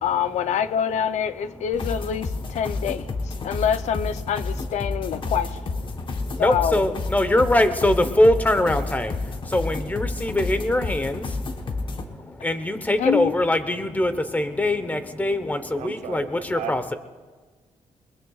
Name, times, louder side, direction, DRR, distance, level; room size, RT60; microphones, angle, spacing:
voice 1, 0.0-5.6 6.4-6.8 13.0-13.3, left 8 dB, 85° left, 12 dB, 0.6 m, -26 dB
sound 1, 1.7-12.0, left 3 dB, 45° left, 1.2 m, -30 dB
voice 2, 6.4-9.1 9.5-11.2 12.4-16.9, left 1 dB, 15° left, 10 dB, 1.0 m, -22 dB
voice 3, 15.7-16.8, right 9 dB, 80° right, 9 dB, 0.9 m, -35 dB
22.0 x 21.5 x 2.4 m, 1.4 s
cardioid pair, 115°, 12 cm